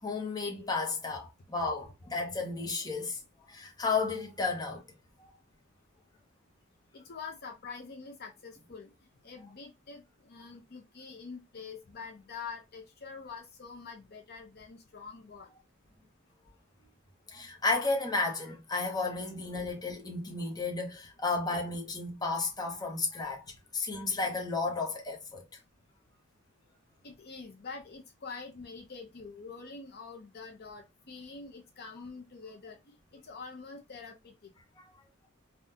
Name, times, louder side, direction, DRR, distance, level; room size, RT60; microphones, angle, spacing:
voice 1, 0.0-3.2 3.5-4.8 5.2-5.3 17.3-23.4 23.7-25.4 34.8-34.9, left 3 dB, 20° left, 0.8 m, -33 dB
voice 2, 6.9-8.9 9.2-15.5 27.0-32.8 33.1-34.5, left 5 dB, 50° left, 0.6 m, -45 dB
3.6 x 2.3 x 2.7 m
head